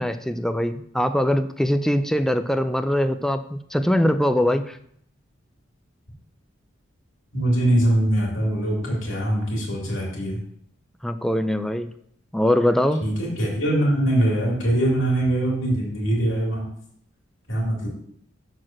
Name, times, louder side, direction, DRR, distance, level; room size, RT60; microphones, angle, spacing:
voice 1, 0.0-4.8 11.0-11.9 12.3-13.0, left 1 dB, ahead, 9 dB, 0.3 m, -22 dB
voice 2, 7.3-10.4 13.0-16.6 17.5-17.9, right 1 dB, 75° left, -4 dB, 2.7 m, -22 dB
6.4 x 4.6 x 6.0 m, 0.67 s
head